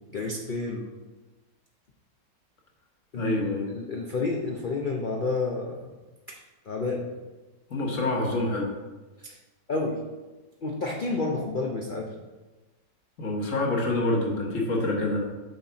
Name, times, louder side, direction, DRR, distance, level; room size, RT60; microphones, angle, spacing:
voice 1, 0.1-0.9 3.1-3.4 3.7-5.9 6.7-7.1 9.2-9.4 9.7-10.0 10.6-12.1, left 3 dB, 85° left, 0 dB, 0.4 m, -30 dB
voice 2, 3.2-3.7 7.7-8.7 13.2-15.3, left 2 dB, 50° left, -1 dB, 1.4 m, -26 dB
6.7 x 4.1 x 5.7 m, 1.2 s
omnidirectional pair, 1.9 m